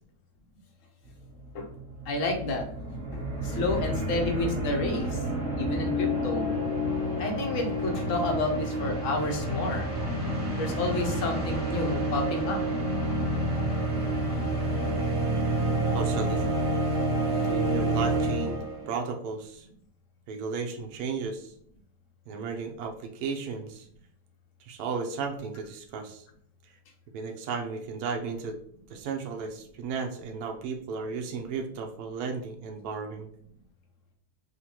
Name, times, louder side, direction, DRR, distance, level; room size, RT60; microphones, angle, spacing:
sound 1, 1.2-1.3 1.5-18.9, right 1 dB, 30° right, 1.6 m, -29 dB
voice 1, 2.1-2.6 3.1-5.2 5.6-6.5 7.2-9.9 10.6-12.6 17.4-17.5, left 2 dB, 60° left, 3 dB, 1.1 m, -30 dB
voice 2, 15.9-16.4 17.4-19.7 20.3-21.5 22.3-23.9 24.6-26.2 27.1-28.6 28.9-33.3, right 5 dB, 75° right, 3 dB, 1.1 m, -34 dB
5.3 x 2.4 x 2.9 m, 0.63 s
omnidirectional pair, 1.7 m